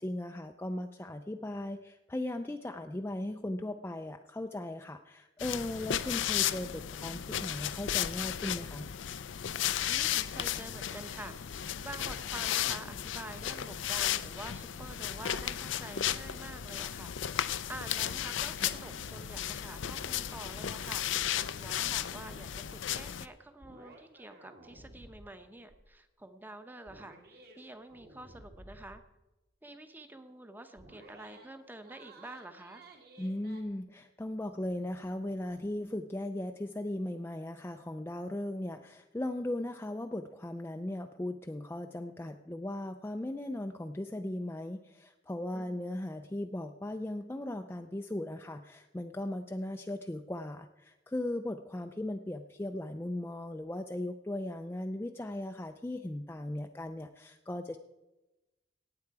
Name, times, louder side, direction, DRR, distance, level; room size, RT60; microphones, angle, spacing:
voice 1, 0.0-8.9 33.2-57.8, left 1 dB, 10° left, 5 dB, 0.4 m, -37 dB
sound 1, 5.4-23.3, left 10 dB, 85° left, 0.5 m, -34 dB
voice 2, 9.9-29.0 29.6-32.8 45.5-45.8 51.9-52.0, right 1 dB, 10° right, 8 dB, 0.8 m, -48 dB
sound 2, 18.7-19.4 23.6-25.3 25.7-25.9 26.9-27.6 27.9-29.0 30.8-31.5 31.8-33.6, right 1 dB, 55° right, 1.9 m, -54 dB
18.0 x 7.8 x 4.7 m, 1.0 s
head